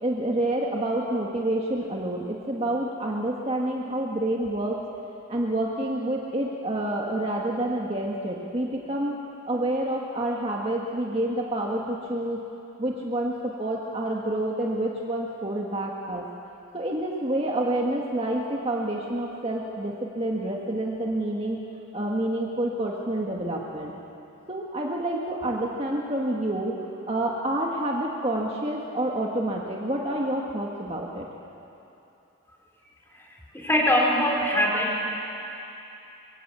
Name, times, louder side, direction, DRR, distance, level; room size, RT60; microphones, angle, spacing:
voice 1, 0.0-4.8 5.3-9.2 9.5-12.4 12.8-16.2 16.7-21.6 21.9-23.9 24.5-26.8 27.1-31.3, right 1 dB, 30° right, -2 dB, 1.7 m, -28 dB
voice 2, 33.3-35.1, equal, 10° left, -1 dB, 4.0 m, -23 dB
24.0 x 23.0 x 8.2 m, 2.8 s
head